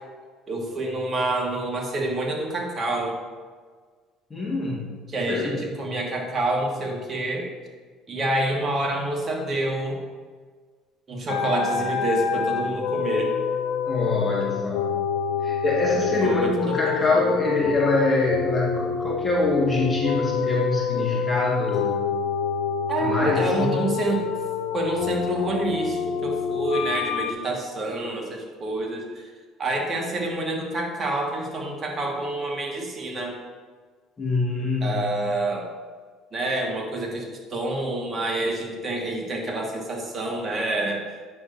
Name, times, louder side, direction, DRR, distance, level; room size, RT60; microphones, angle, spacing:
voice 1, 0.5-3.1 5.1-7.5 8.1-10.0 11.1-13.3 16.0-17.3 22.9-24.2 24.7-29.3 29.6-33.4 34.8-35.7 36.3-41.0, right 2 dB, 30° right, 0 dB, 1.4 m, -27 dB
voice 2, 4.3-4.9 5.3-5.6 13.9-14.9 15.4-22.0 23.0-23.9 34.2-35.2, left 2 dB, 20° left, -4 dB, 1.5 m, -24 dB
sound 1, 11.3-27.3, left 7 dB, 80° left, 0.4 m, -27 dB
8.6 x 6.3 x 2.6 m, 1.5 s
cardioid pair, 105°, 0 cm